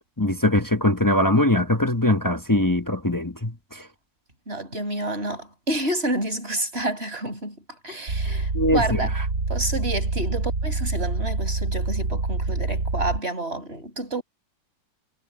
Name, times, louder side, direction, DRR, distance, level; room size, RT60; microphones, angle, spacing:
voice 1, 0.2-3.8 8.5-9.2, left 1 dB, 20° left, 0.6 m, -22 dB
voice 2, 4.5-7.6 7.8-9.1 9.5-14.2, right 1 dB, 30° right, 7.2 m, -29 dB
sound 1, 8.1-13.2, right 3 dB, 50° right, 3.8 m, -26 dB
omnidirectional pair, 2.1 m